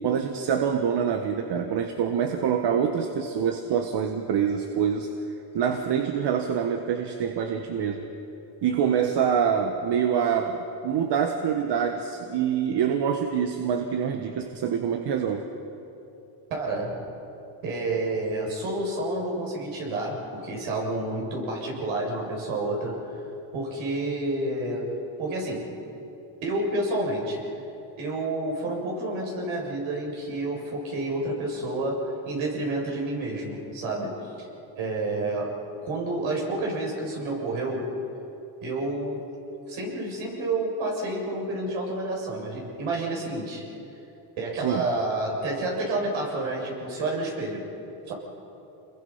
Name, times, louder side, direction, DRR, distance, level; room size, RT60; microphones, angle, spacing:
voice 1, 0.0-5.1 5.5-8.0 8.6-15.4 44.6-44.8, right 7 dB, 55° right, 5 dB, 1.6 m, -25 dB
voice 2, 16.5-17.1 17.6-23.0 23.5-25.7 26.4-27.4 28.0-34.5 34.8-37.9 38.6-39.2 39.7-43.6 44.4-47.7 48.1-48.2, right 2 dB, 70° right, -1 dB, 7.5 m, -29 dB
28.0 x 21.5 x 5.8 m, 2.9 s
cardioid pair, 110°, 49 cm